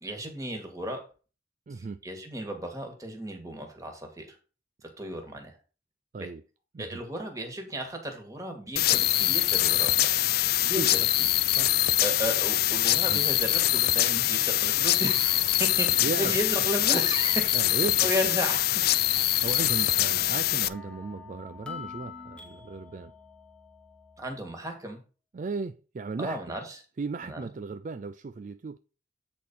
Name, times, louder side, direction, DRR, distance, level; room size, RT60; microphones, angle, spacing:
voice 1, 0.0-1.0 1.7-4.4 4.8-5.5 6.2-6.3 6.8-10.2 10.6-11.3 12.0-19.7 24.2-25.0 26.2-26.8 27.2-27.4, equal, 15° right, 1.9 m, -34 dB
voice 2, 1.7-2.0 6.1-6.4 6.7-7.0 10.8-10.9 11.5-11.8 13.1-13.2 16.0-16.4 17.5-18.1 19.4-23.1 25.3-26.6 27.0-28.8, right 4 dB, 40° right, 0.3 m, -36 dB
sound 1, 8.8-20.7, left 14 dB, 55° left, 0.4 m, -24 dB
sound 2, 20.0-24.3, left 5 dB, 5° left, 1.1 m, -46 dB
8.4 x 4.3 x 5.4 m
head